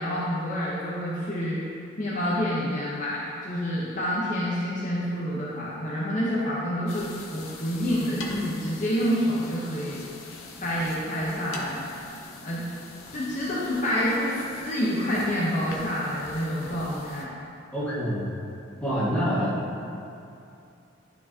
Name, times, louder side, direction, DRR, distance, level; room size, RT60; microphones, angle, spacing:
voice 1, 0.0-1.6 2.0-10.0 10.6-11.8 12.4-12.6 13.1-17.3, equal, 35° left, -7 dB, 0.8 m, -28 dB
sound 1, 6.9-17.2, left 3 dB, 85° left, 0.7 m, -43 dB
voice 2, 17.7-18.2 18.8-19.6, equal, 5° left, -10 dB, 1.5 m, -26 dB
11.0 x 4.6 x 2.8 m, 2.6 s
head